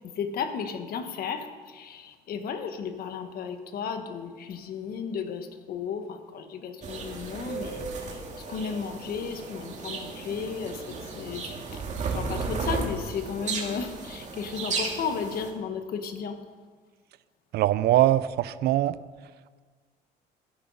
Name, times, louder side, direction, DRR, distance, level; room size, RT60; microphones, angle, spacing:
voice 1, 0.0-8.2 8.5-11.8 12.1-16.4, left 6 dB, 60° left, 8 dB, 1.3 m, -34 dB
sound 1, 6.8-15.5, right 4 dB, 45° right, 2.3 m, -34 dB
voice 2, 17.5-19.0, right 14 dB, 70° right, 16 dB, 0.5 m, -22 dB
12.5 x 10.5 x 5.5 m, 1.5 s
cardioid pair, 110°, 17 cm